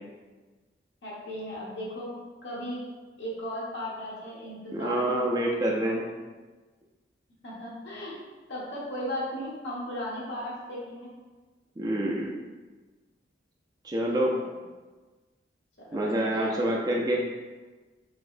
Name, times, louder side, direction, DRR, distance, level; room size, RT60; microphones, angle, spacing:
voice 1, 1.0-2.1 2.4-2.8 3.2-5.5 7.4-8.1 8.5-11.1 14.0-14.4 15.8-16.6, equal, 80° left, -6 dB, 1.3 m, -36 dB
voice 2, 4.7-6.1 11.8-12.3 13.8-14.3 15.9-17.2, right 1 dB, 20° right, -2 dB, 0.4 m, -27 dB
4.7 x 3.1 x 2.5 m, 1.3 s
head